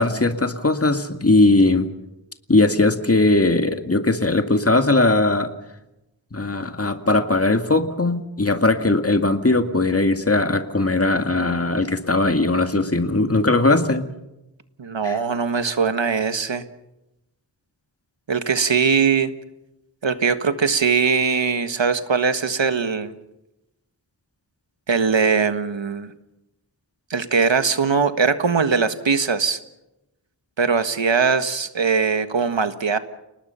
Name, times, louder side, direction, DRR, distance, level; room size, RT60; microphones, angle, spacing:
voice 1, 0.0-1.9 2.5-5.5 6.3-14.1 15.0-15.2, left 2 dB, 30° left, 7 dB, 2.1 m, -19 dB
voice 2, 14.8-16.6 18.3-19.3 20.0-23.1 24.9-26.1 27.1-29.6 30.6-33.0, right 5 dB, 85° right, 10 dB, 1.6 m, -21 dB
30.0 x 19.0 x 5.7 m, 0.93 s
wide cardioid pair, 60°, 44 cm